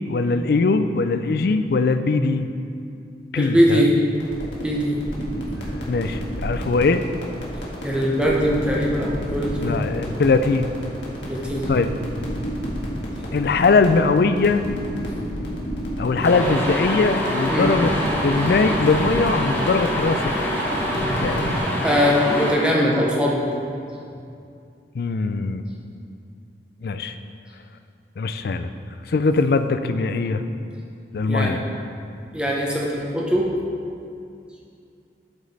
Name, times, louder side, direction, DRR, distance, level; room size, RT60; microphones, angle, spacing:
voice 1, 0.1-2.5 3.3-3.9 5.9-7.0 9.6-10.7 11.7-11.9 13.3-14.6 16.0-17.9 18.2-20.5 21.2-21.5 24.9-25.6 26.8-27.1 28.2-28.7 29.1-30.4 31.1-31.6, left 4 dB, 60° left, 10 dB, 0.4 m, -21 dB
voice 2, 3.4-3.9 4.6-5.0 7.8-9.8 11.3-11.7 17.4-17.7 21.8-23.4 31.3-31.5 32.3-33.5, equal, 5° right, -3 dB, 0.7 m, -21 dB
sound 1, 4.1-21.6, equal, 80° left, 1.6 m, -31 dB
sound 2, 16.2-22.5, equal, 15° left, 1.2 m, -25 dB
9.7 x 5.2 x 4.1 m, 2.5 s
head